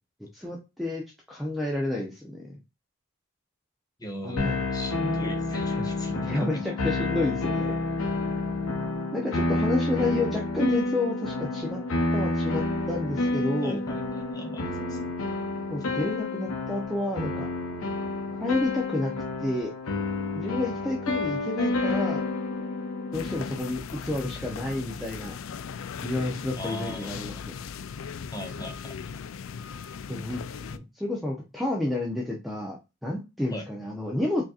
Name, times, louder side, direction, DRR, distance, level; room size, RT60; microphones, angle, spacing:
voice 1, 0.3-2.6 4.2-4.6 6.3-7.8 9.1-11.8 12.1-13.8 15.7-17.5 18.3-19.1 19.4-19.7 20.3-22.2 23.1-25.3 26.0-27.5 30.1-32.8 33.0-34.5, left 2 dB, ahead, 0.6 m, -30 dB
voice 2, 4.0-6.6 13.6-15.1 26.6-27.4 28.3-29.0 33.5-33.6, equal, 15° left, 1.0 m, -38 dB
sound 1, 4.4-23.6, left 2 dB, 80° left, 0.7 m, -29 dB
sound 2, 23.1-30.8, left 6 dB, 65° left, 0.4 m, -38 dB
4.9 x 2.8 x 2.4 m
head